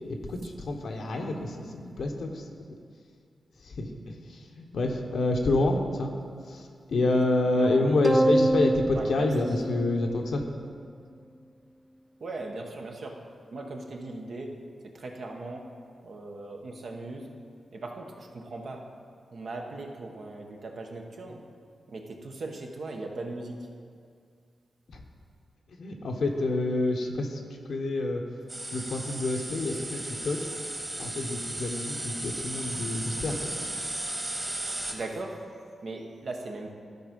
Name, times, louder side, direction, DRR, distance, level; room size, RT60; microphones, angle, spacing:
voice 1, 0.1-2.4 3.6-6.1 6.5-10.4 25.8-27.4 27.7-28.2 28.7-30.4 31.0-33.5, left 2 dB, 75° left, 3 dB, 0.9 m, -28 dB
voice 2, 7.5-8.0 8.9-9.3 12.2-13.2 13.5-15.7 16.0-17.3 17.7-18.9 19.3-21.4 21.9-23.6 34.9-35.4 35.8-36.7, right 2 dB, 65° right, 2 dB, 1.0 m, -39 dB
sound 1, 8.0-10.6, right 1 dB, 5° right, 0.3 m, -26 dB
sound 2, 28.5-34.9, right 1 dB, 30° right, 1.6 m, -35 dB
12.0 x 4.5 x 5.3 m, 2.2 s
cardioid pair, 60°, 0 cm